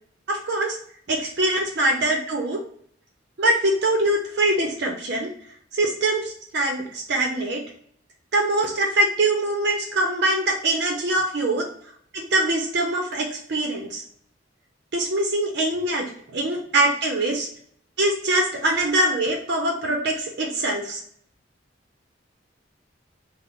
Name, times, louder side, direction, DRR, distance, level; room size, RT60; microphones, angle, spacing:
voice 1, 0.3-0.8 1.1-2.6 3.4-5.3 5.7-7.6 8.3-11.7 12.1-14.0 14.9-16.0 16.3-17.5 18.0-21.0, right 1 dB, 60° right, 1 dB, 0.6 m, -23 dB
3.5 x 2.0 x 3.8 m, 0.63 s
head